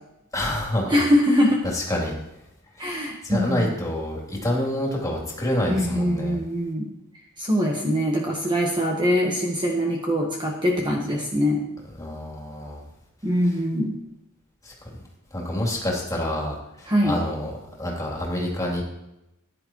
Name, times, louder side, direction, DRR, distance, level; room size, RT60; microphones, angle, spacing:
voice 1, 0.3-1.0 1.7-2.1 2.8-6.4 12.0-12.8 14.6-14.9 15.3-17.5 17.8-18.8, left 1 dB, 15° left, -3 dB, 3.1 m, -27 dB
voice 2, 0.9-1.6 2.8-3.7 5.7-6.9 7.4-11.7 13.2-14.0 16.9-17.2, equal, 20° right, -1 dB, 1.3 m, -23 dB
15.0 x 10.5 x 3.1 m, 0.89 s
head